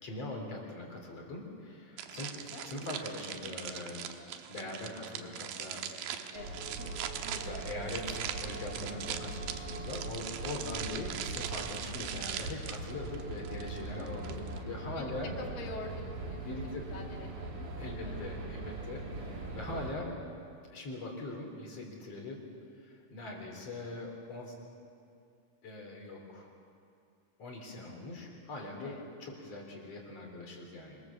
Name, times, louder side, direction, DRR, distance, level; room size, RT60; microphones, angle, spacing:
voice 1, 0.0-2.4 2.7-4.2 4.5-6.4 7.3-15.4 16.4-16.8 17.8-20.1 20.7-22.5 22.8-24.5 25.6-26.5 27.4-31.0, left 2 dB, 45° left, 1 dB, 4.4 m, -42 dB
sound 1, 2.0-14.6, right 9 dB, 90° right, 2.8 m, -41 dB
voice 2, 2.1-2.7 6.3-6.6 10.6-10.8 11.9-12.1 13.8-14.1 15.0-17.7 17.9-18.2 19.2-19.3 28.8-29.1, left 3 dB, 75° left, 1 dB, 4.0 m, -47 dB
sound 2, 6.3-19.9, right 2 dB, 65° right, 4.7 m, -41 dB
25.5 x 21.5 x 7.2 m, 2.4 s
omnidirectional pair, 4.0 m